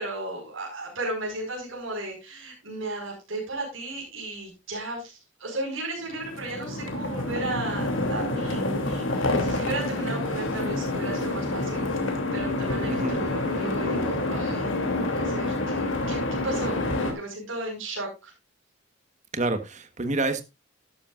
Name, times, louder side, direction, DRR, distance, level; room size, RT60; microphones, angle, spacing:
voice 1, 0.0-11.8 12.3-18.3, right 2 dB, 85° right, -1 dB, 5.1 m, -35 dB
sound 1, 6.1-17.1, left 2 dB, 80° left, 2.8 m, -28 dB
voice 2, 12.9-13.2 19.3-20.4, right 2 dB, 35° right, 9 dB, 1.4 m, -28 dB
12.0 x 11.5 x 2.5 m, 0.24 s
head